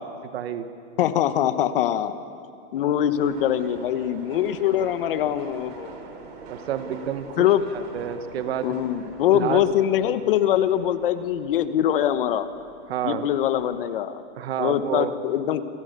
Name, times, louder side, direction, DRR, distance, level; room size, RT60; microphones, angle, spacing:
voice 1, 0.3-0.7 6.5-7.5 7.7-8.8 9.3-9.6 12.9-13.3 14.4-15.1, right 10 dB, 55° right, 10 dB, 1.9 m, -29 dB
voice 2, 1.0-2.1 2.7-5.9 7.4-7.6 8.6-12.5 13.0-14.2 14.6-15.7, left 11 dB, 45° left, 11 dB, 1.4 m, -23 dB
sound 1, 3.1-13.8, right 4 dB, 40° right, 3.8 m, -44 dB
29.0 x 28.5 x 6.9 m, 2.4 s
hypercardioid pair, 165°, 37 cm